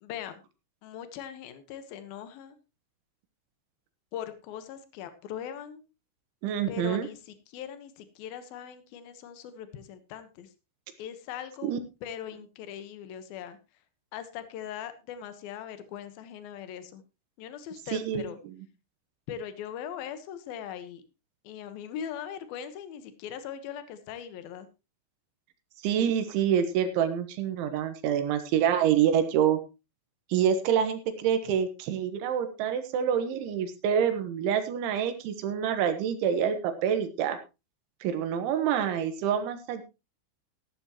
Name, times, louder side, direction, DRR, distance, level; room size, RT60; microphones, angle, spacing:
voice 1, 0.0-0.4 0.8-2.6 4.1-5.9 6.7-10.5 11.0-11.7 12.0-13.6 14.1-17.0 17.4-18.4 19.3-21.0 21.4-24.7, left 9 dB, 70° left, 11 dB, 2.5 m, -40 dB
voice 2, 6.4-7.1 11.6-11.8 17.9-18.3 25.8-29.6 30.3-37.4 38.0-39.8, right 8 dB, 75° right, 9 dB, 3.5 m, -27 dB
15.0 x 12.5 x 3.0 m, 0.27 s
omnidirectional pair, 5.7 m